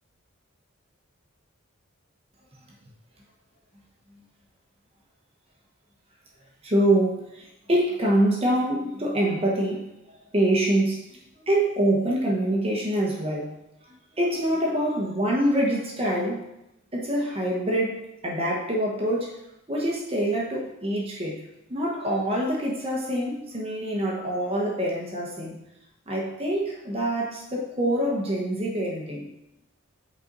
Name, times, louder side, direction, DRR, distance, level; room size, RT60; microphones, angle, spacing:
voice 1, 6.6-9.9 10.3-13.5 13.9-16.4 16.9-19.4 19.7-21.4 21.7-25.6 26.1-29.3, right 1 dB, 25° right, -3 dB, 1.1 m, -25 dB
8.1 x 4.4 x 4.0 m, 0.87 s
head